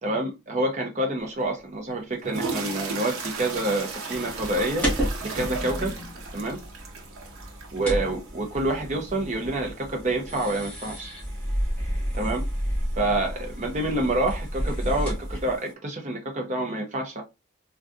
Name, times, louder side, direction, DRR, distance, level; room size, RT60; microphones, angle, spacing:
voice 1, 0.0-4.9 5.2-5.9 6.3-6.6 7.7-11.1 12.1-12.4 13.0-17.2, right 1 dB, 35° right, 0.6 m, -27 dB
sound 1, 1.4-1.5 2.1-15.7, right 4 dB, 80° right, 0.7 m, -39 dB
sound 2, 4.1-15.6, equal, 5° left, 1.1 m, -31 dB
3.6 x 2.3 x 2.5 m
head